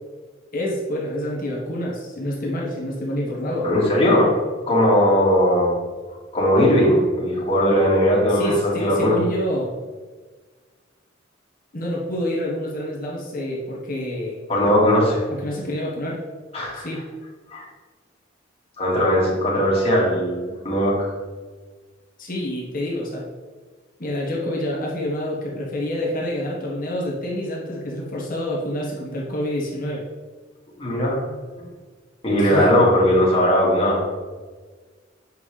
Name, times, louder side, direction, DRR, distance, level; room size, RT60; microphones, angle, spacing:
voice 1, 0.5-3.7 8.3-9.7 11.7-14.4 15.3-16.2 16.7-17.0 22.2-23.2 24.0-30.0 32.4-32.7, left 1 dB, 45° left, -4 dB, 1.4 m, -27 dB
voice 2, 3.6-4.3 4.7-5.8 6.3-9.2 14.5-15.2 16.5-16.9 17.5-17.7 18.8-21.0 30.8-31.2 31.6-31.7 32.2-34.0, equal, 30° left, -5 dB, 2.2 m, -18 dB
7.7 x 5.6 x 3.3 m, 1.4 s
head